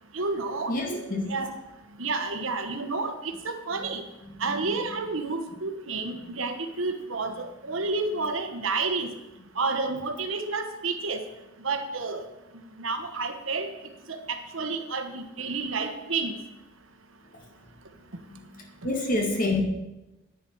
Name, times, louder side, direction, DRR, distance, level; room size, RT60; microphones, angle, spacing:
voice 1, 0.1-0.8 1.3-1.5 2.0-4.0 4.4-9.1 9.6-11.2 11.6-12.2 12.8-13.7 14.1-16.3, right 3 dB, 70° right, 7 dB, 1.3 m, -30 dB
voice 2, 0.7-1.3 4.5-4.6 18.3-18.4 18.8-19.6, left 2 dB, 45° left, 2 dB, 2.0 m, -27 dB
10.5 x 9.8 x 4.7 m, 0.96 s
head